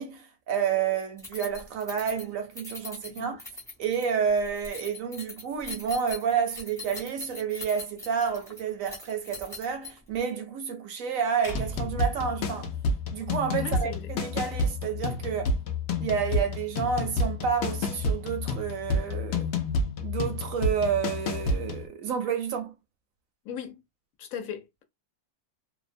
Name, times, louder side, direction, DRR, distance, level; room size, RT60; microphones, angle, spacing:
voice 1, 0.0-3.4 3.8-12.7 13.1-15.5 16.0-19.5 20.0-22.7, right 7 dB, 70° right, 0.8 m, -30 dB
Keys jangling, 1.2-10.2, left 3 dB, 5° left, 0.3 m, -42 dB
sound 1, 11.4-13.7, right 3 dB, 30° left, 0.8 m, -40 dB
sound 2, 11.5-21.9, left 2 dB, 90° left, 0.6 m, -29 dB
voice 2, 13.5-14.1 23.4-23.8 24.2-24.8, left 8 dB, 65° left, 0.9 m, -38 dB
2.7 x 2.1 x 2.5 m
omnidirectional pair, 1.8 m